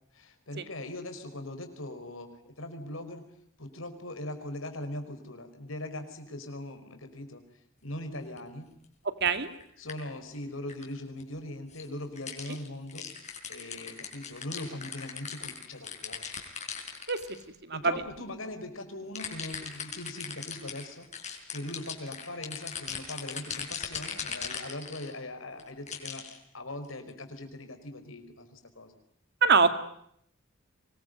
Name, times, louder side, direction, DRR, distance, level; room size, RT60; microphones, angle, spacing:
voice 1, 0.1-3.2 3.6-7.4 7.8-8.7 9.8-13.1 13.5-16.2 17.7-28.9, left 1 dB, 75° left, 6 dB, 4.9 m, -40 dB
sound 1, 8.4-8.5 9.2-9.6 9.9-10.0 10.3-10.4 10.7-10.8 11.2-11.3 11.7-11.8 12.2-17.4 18.0-18.1 19.1-25.1 25.6-26.4 26.9-27.1, left 7 dB, 35° left, 4.9 m, -39 dB
voice 2, 17.6-17.9 29.4-29.8, right 5 dB, 55° right, 10 dB, 2.2 m, -23 dB
25.0 x 21.0 x 9.3 m, 0.70 s
head